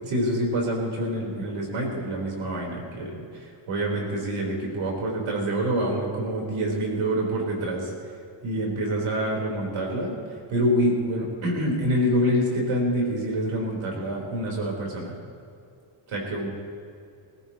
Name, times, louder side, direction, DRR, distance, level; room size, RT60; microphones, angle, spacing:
voice 1, 0.0-7.9 8.4-10.2 10.5-15.2 16.1-16.5, equal, 85° right, -2 dB, 4.3 m, -26 dB
26.5 x 14.5 x 3.1 m, 2.4 s
cardioid pair, 100°, 49 cm